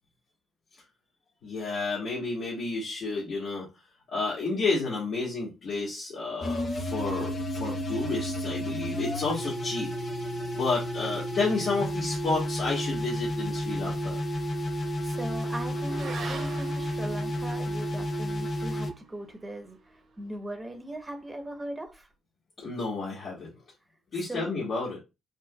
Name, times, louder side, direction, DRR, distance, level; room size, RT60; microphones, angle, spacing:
voice 1, 1.4-3.7 4.1-9.9 10.5-14.2 22.6-23.5 24.1-25.0, left 3 dB, 65° left, -7 dB, 1.6 m, -31 dB
sound 1, 6.4-18.9, equal, 45° left, 0.7 m, -31 dB
Motorcycle / Accelerating revving vroom, 13.4-21.9, right 4 dB, 65° right, 1.4 m, -47 dB
voice 2, 15.0-22.1 24.2-24.5, right 1 dB, 15° right, 5 dB, 1.0 m, -39 dB
4.7 x 2.2 x 2.3 m, 0.26 s
cardioid pair, 90°, 0 cm